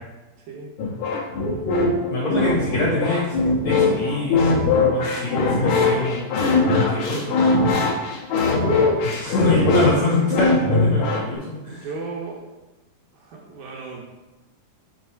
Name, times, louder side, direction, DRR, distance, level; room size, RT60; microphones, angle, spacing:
voice 1, 0.4-0.7 10.9-11.1 11.7-12.5 13.1-14.0, right 4 dB, 70° right, -2 dB, 2.3 m, -36 dB
sound 1, 0.8-11.4, left 3 dB, 80° left, 1.6 m, -20 dB
voice 2, 2.1-3.4 3.6-4.6 4.9-7.7 9.0-11.9, left 2 dB, 65° left, -6 dB, 1.8 m, -25 dB
9.2 x 3.5 x 4.5 m, 1.1 s
omnidirectional pair, 4.8 m